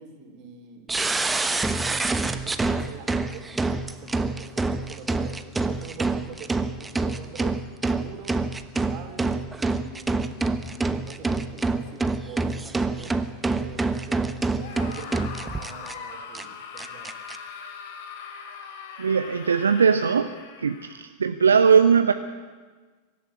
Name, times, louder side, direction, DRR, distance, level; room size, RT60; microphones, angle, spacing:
voice 1, 0.0-3.4 3.9-7.6 7.8-8.4 8.8-13.1 13.6-17.1, right 6 dB, 40° right, 4 dB, 3.5 m, -45 dB
sound 1, 0.9-15.9 16.3-16.4 16.8-17.4, right 3 dB, 10° right, 1.1 m, -27 dB
Screaming, 14.5-21.0, left 6 dB, 55° left, 3.1 m, -41 dB
voice 2, 19.0-20.3 20.6-22.1, right 6 dB, 70° right, 8 dB, 0.8 m, -19 dB
24.0 x 13.0 x 8.6 m, 1.4 s
figure-of-eight pair, 90°, 0 cm